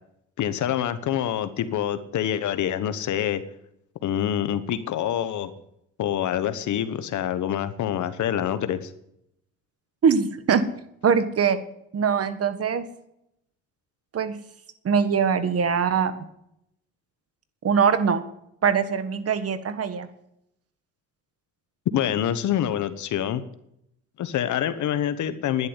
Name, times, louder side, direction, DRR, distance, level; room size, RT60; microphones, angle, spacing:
voice 1, 0.4-3.4 4.0-5.5 6.0-8.9 21.9-23.4 24.2-25.7, left 10 dB, 75° left, 12 dB, 1.2 m, -26 dB
voice 2, 10.0-10.6 11.0-11.6 11.9-12.8 14.1-14.4 14.8-16.1 17.6-18.2 18.6-20.1, right 6 dB, 50° right, 12 dB, 1.6 m, -22 dB
11.0 x 10.5 x 8.2 m, 0.78 s
cardioid pair, 90°, 30 cm